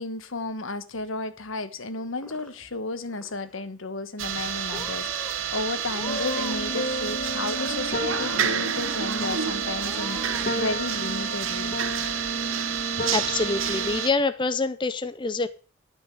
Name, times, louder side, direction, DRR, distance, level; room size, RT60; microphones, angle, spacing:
voice 1, 0.0-11.8, left 2 dB, 85° left, 1.3 m, -33 dB
Purr / Meow, 1.9-2.8 3.1-3.6 4.3-4.4 4.7-5.3 5.8-6.7 7.0-7.7 8.1-8.7 9.2-9.3 9.7-10.5, equal, 5° left, 1.6 m, -42 dB
sound 1, 4.2-14.1, right 8 dB, 85° right, 1.1 m, -29 dB
sound 2, 6.0-14.0, equal, 45° left, 1.1 m, -33 dB
voice 2, 13.1-15.5, left 3 dB, 25° left, 0.6 m, -26 dB
12.5 x 6.2 x 7.9 m
head